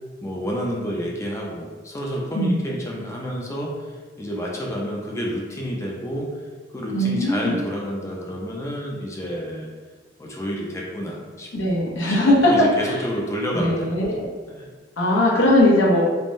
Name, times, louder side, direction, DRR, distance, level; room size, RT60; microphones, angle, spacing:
voice 1, 0.2-3.7 4.2-6.3 6.7-9.7 10.2-11.5 12.0-14.1 14.5-14.7, equal, 15° left, -2 dB, 0.4 m, -29 dB
voice 2, 2.3-2.6 6.9-7.5 11.5-12.5 13.5-14.2 15.0-16.0, left 1 dB, 80° left, -4 dB, 0.7 m, -19 dB
3.4 x 2.1 x 2.6 m, 1.4 s
head